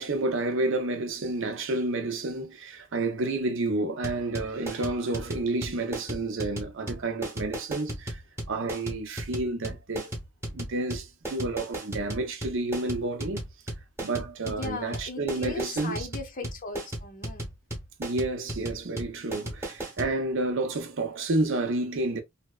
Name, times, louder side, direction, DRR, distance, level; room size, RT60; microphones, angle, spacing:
voice 1, 0.0-8.2 8.5-10.1 10.5-13.4 14.0-16.1 18.0-22.2, right 2 dB, 60° right, 0.6 m, -30 dB
sound 1, 4.0-20.1, right 1 dB, 10° right, 1.0 m, -35 dB
voice 2, 14.5-17.5, left 2 dB, 40° left, 0.6 m, -37 dB
2.7 x 2.1 x 2.2 m
head